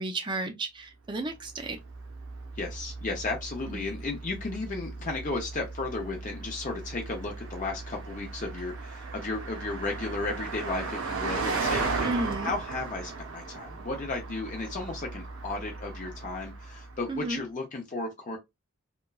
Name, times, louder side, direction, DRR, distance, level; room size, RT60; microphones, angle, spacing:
voice 1, 0.0-1.8 3.6-3.9 12.0-12.5 17.1-17.4, right 2 dB, 20° right, 0.4 m, -33 dB
Car passing by, 1.4-17.2, right 4 dB, 65° right, 0.6 m, -36 dB
voice 2, 2.6-12.1 12.4-18.4, left 3 dB, 35° left, 0.5 m, -34 dB
2.9 x 2.2 x 2.3 m
head